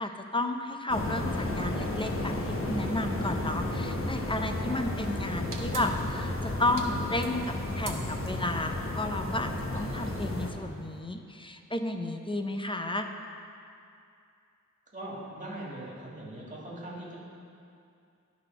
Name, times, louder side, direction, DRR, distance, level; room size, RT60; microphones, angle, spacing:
voice 1, 0.0-13.1, left 2 dB, 15° left, 5 dB, 0.5 m, -32 dB
sound 1, 0.9-10.5, left 1 dB, 40° left, 1.0 m, -33 dB
sound 2, 5.5-11.0, right 5 dB, 75° right, 0.8 m, -45 dB
voice 2, 14.9-17.2, right 1 dB, 25° right, -5 dB, 2.2 m, -40 dB
11.5 x 4.2 x 5.5 m, 2.5 s
wide cardioid pair, 80°, 32 cm